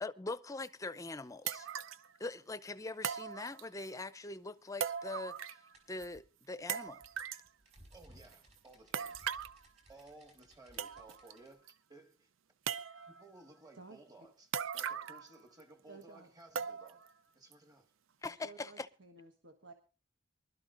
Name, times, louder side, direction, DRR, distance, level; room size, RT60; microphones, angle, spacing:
voice 1, 0.0-1.7 2.2-5.3 5.9-7.0 18.2-18.9, left 3 dB, 15° left, 0.5 m, -42 dB
sound 1, 0.6-0.7 1.5-2.1 3.0-3.9 4.8-5.7 6.0-6.1 6.7-7.5 8.9-9.6 10.4-10.5 10.8-11.3 11.7-11.8 12.7-13.2 14.5-15.3 15.6-15.7 16.6-17.1 17.5-17.6 18.2-18.3, right 8 dB, 85° right, 0.5 m, -39 dB
sound 2, 5.7-11.5, equal, 35° right, 5.1 m, -62 dB
voice 2, 7.9-9.2 9.9-12.3 13.0-17.1 17.3-17.9, right 2 dB, 20° right, 1.7 m, -58 dB
voice 3, 15.9-16.3 18.3-19.7, right 3 dB, 65° right, 1.4 m, -54 dB
24.0 x 12.5 x 2.5 m
head